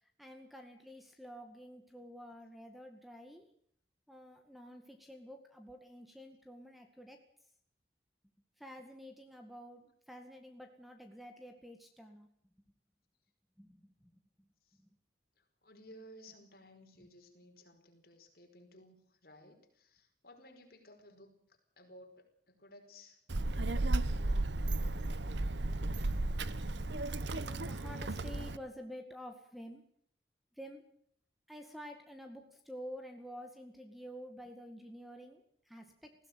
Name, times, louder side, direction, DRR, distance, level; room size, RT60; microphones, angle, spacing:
voice 1, 0.2-3.5 4.1-7.2 8.6-12.3 13.6-13.9 17.0-17.1 27.4-29.8 30.6-30.8 31.5-36.1, equal, ahead, 5 dB, 2.0 m, -50 dB
voice 2, 15.4-23.2, left 1 dB, 55° left, 4 dB, 5.0 m, -57 dB
Child speech kid speaking, 23.3-28.6, right 2 dB, 75° right, 1.1 m, -34 dB
20.5 x 16.5 x 9.2 m, 0.63 s
head